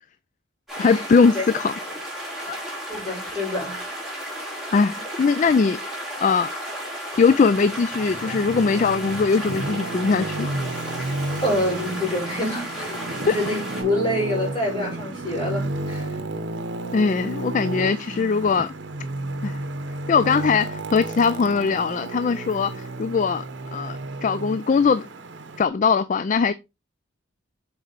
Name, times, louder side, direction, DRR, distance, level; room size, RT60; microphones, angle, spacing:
sound 1, 0.7-13.8, equal, ahead, 3.9 m, -34 dB
voice 1, 0.8-1.7 2.4-2.6 4.7-5.8 6.2-6.5 7.2-10.5 13.3-13.4 16.9-18.7 19.4-19.6 20.1-23.4 23.7-25.1 25.6-26.5, left 5 dB, 40° left, 0.3 m, -21 dB
voice 2, 2.9-3.8 4.9-5.0 11.4-16.2, left 1 dB, 25° left, 4.6 m, -27 dB
Traffic noise roadway noise, 7.2-25.7, right 2 dB, 60° right, 0.9 m, -32 dB
7.3 x 4.7 x 3.9 m
head